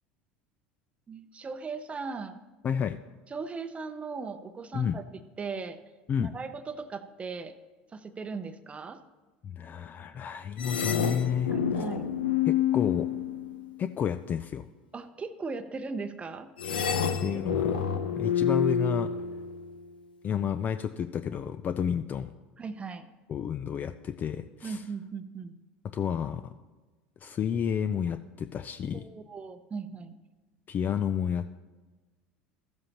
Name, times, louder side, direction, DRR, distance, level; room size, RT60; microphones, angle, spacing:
voice 1, 1.1-2.4 3.3-5.0 5.4-5.8 6.2-7.5 7.9-9.0 11.5-12.1 14.9-16.5 17.3-17.5 22.6-23.1 24.6-25.6 28.9-30.2, right 4 dB, 25° right, 11 dB, 0.7 m, -38 dB
voice 2, 2.6-3.0 4.7-5.0 6.1-6.3 9.4-11.8 12.5-13.1 13.8-14.7 16.8-16.9 17.2-17.8 18.2-19.1 20.2-22.3 23.3-24.8 25.9-26.5 27.2-29.0 30.7-31.4, left 8 dB, 35° left, 11 dB, 0.4 m, -31 dB
sound 1, 10.6-13.8 16.6-19.8, left 8 dB, 85° left, 0.7 m, -28 dB
14.0 x 7.7 x 2.9 m, 1.3 s
hypercardioid pair, 80°, 5 cm